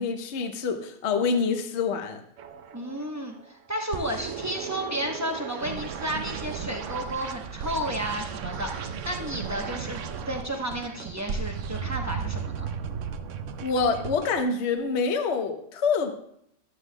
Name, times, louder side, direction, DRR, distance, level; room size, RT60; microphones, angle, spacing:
voice 1, 0.0-2.2 13.6-16.1, left 4 dB, 50° left, 5 dB, 0.9 m, -26 dB
sound 1, 2.4-3.5 3.9-14.4, right 6 dB, 75° right, 0.7 m, -35 dB
voice 2, 2.7-10.0 10.3-12.7, equal, 20° right, 1 dB, 0.4 m, -32 dB
14.0 x 11.0 x 2.2 m, 0.70 s
omnidirectional pair, 2.0 m